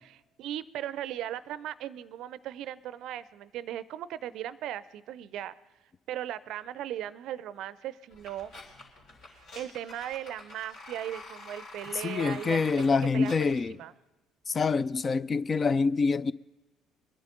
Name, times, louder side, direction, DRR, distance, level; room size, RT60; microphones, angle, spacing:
voice 1, 0.1-5.5 6.1-8.5 9.3-13.9, right 11 dB, 60° right, 0.5 m, -38 dB
sound 1, 8.1-13.5, left 2 dB, 65° left, 3.5 m, -47 dB
voice 2, 12.0-13.8 14.5-16.3, left 4 dB, 35° left, 0.4 m, -26 dB
22.5 x 10.5 x 3.9 m
hypercardioid pair, 55°, 0 cm